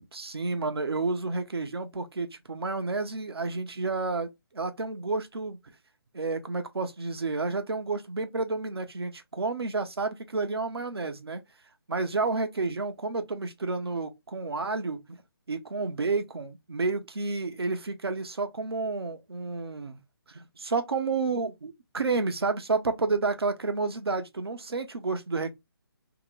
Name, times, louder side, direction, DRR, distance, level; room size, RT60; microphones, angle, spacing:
voice 1, 0.1-5.6 6.1-11.4 11.9-15.2 15.5-20.0 20.3-25.5, right 3 dB, 80° right, 0.7 m, -30 dB
2.8 x 2.1 x 3.7 m
figure-of-eight pair, 150°, 13 cm